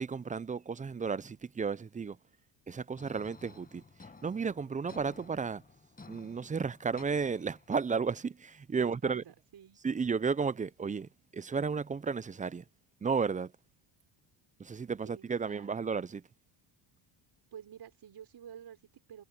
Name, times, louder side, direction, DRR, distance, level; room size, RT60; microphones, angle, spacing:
voice 1, 0.0-2.2 2.7-3.8 4.2-5.6 6.1-9.2 9.8-12.6 13.0-13.5 14.6-16.2, right 5 dB, 15° right, 0.5 m, -33 dB
sound 1, 3.0-8.0, left 3 dB, 15° left, 1.7 m, -55 dB
voice 2, 8.8-9.8 15.0-15.7 17.5-19.2, right 9 dB, 50° right, 6.1 m, -49 dB
cardioid pair, 95°, 49 cm